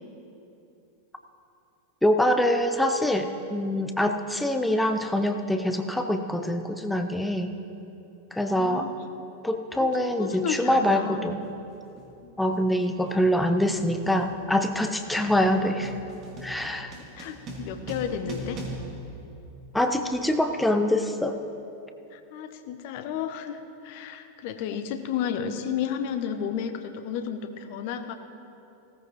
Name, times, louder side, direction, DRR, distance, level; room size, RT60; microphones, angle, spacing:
voice 1, 2.0-7.5 8.3-8.9 9.4-11.5 12.4-15.9 16.4-16.9 19.7-21.4, left 1 dB, 5° left, 6 dB, 0.6 m, -24 dB
voice 2, 8.5-9.0 9.7-11.3 12.2-12.3 17.0-18.6 22.1-28.2, left 8 dB, 50° left, 9 dB, 0.8 m, -32 dB
sound 1, 9.8-9.9 10.9-11.1 11.4-20.0, right 1 dB, 30° right, 2.3 m, -42 dB
17.5 x 14.0 x 3.1 m, 2.8 s
figure-of-eight pair, 90°, 0 cm